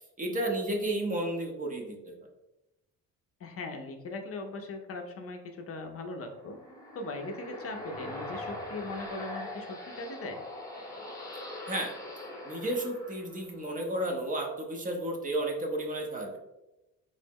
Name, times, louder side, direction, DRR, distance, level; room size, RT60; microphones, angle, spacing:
voice 1, 0.2-2.1 11.7-11.9 12.5-16.4, right 1 dB, 25° right, 1 dB, 0.5 m, -32 dB
voice 2, 3.4-6.6 6.9-10.4, left 3 dB, 45° left, 4 dB, 0.5 m, -39 dB
sound 1, 6.2-13.7, left 1 dB, 10° left, 0.8 m, -42 dB
3.7 x 2.0 x 3.5 m, 0.97 s
cardioid pair, 120°, 34 cm